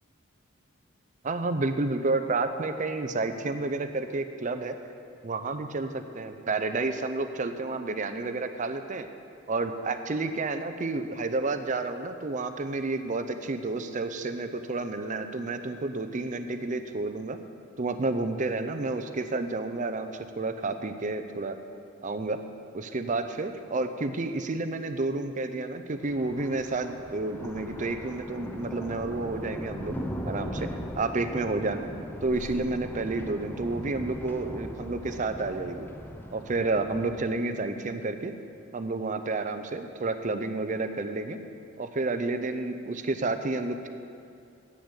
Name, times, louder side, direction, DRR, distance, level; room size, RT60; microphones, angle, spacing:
voice 1, 1.2-4.8 5.2-9.1 9.5-17.4 17.8-21.6 22.0-22.4 22.7-30.0 30.2-31.9 32.2-35.9 36.3-38.3 38.7-41.4 41.8-43.9, right 3 dB, 40° right, 8 dB, 0.6 m, -30 dB
Thunder, 26.0-37.1, equal, 10° left, 0.7 m, -39 dB
8.5 x 6.5 x 8.1 m, 2.6 s
head